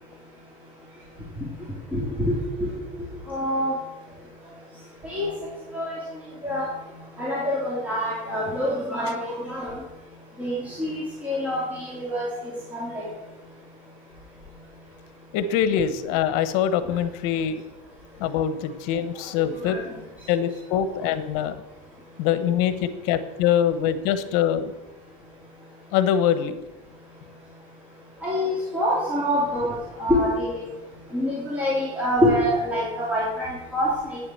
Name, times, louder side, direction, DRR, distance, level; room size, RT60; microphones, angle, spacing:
voice 1, 1.9-2.7 3.3-3.7 5.0-5.3 5.7-6.0 6.4-6.7 7.2-9.8 10.4-12.3 12.7-13.0 19.6-19.8 28.2-30.6 31.1-34.2, equal, 10° right, -7 dB, 3.4 m, -25 dB
voice 2, 15.3-17.6 18.2-19.8 20.3-21.5 22.2-24.7 25.9-26.6, left 9 dB, 70° left, 11 dB, 1.1 m, -23 dB
9.6 x 7.7 x 7.7 m, 1.1 s
supercardioid pair, 140°, 18 cm